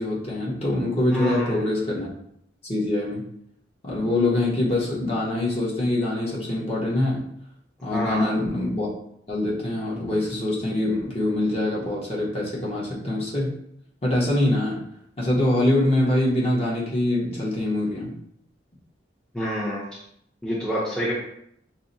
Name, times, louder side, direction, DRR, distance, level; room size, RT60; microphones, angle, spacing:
voice 1, 0.0-2.1 2.6-3.2 3.8-7.2 7.8-8.9 9.3-13.5 14.0-14.8 15.2-18.1, left 1 dB, 35° left, -5 dB, 0.9 m, -24 dB
voice 2, 1.1-1.6 7.9-8.3 19.3-19.8 20.4-21.1, equal, 5° left, -8 dB, 0.6 m, -27 dB
5.6 x 2.0 x 2.6 m, 0.72 s
head